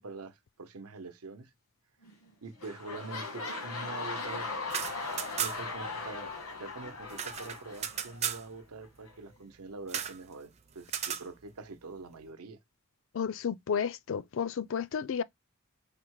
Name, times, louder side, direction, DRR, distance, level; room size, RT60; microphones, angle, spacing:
voice 1, 0.0-1.5 2.4-4.5 5.4-12.6, right 3 dB, 85° right, 0.8 m, -44 dB
sound 1, 2.0-2.3 2.6-8.4 9.1-9.2, left 3 dB, 85° left, 1.6 m, -39 dB
sound 2, 4.6-5.8 6.1-6.2 6.5-8.5 9.9-10.2 10.9-11.3, right 8 dB, 30° right, 0.5 m, -35 dB
voice 2, 13.1-15.2, left 7 dB, 60° left, 0.3 m, -32 dB
5.1 x 2.1 x 4.6 m
head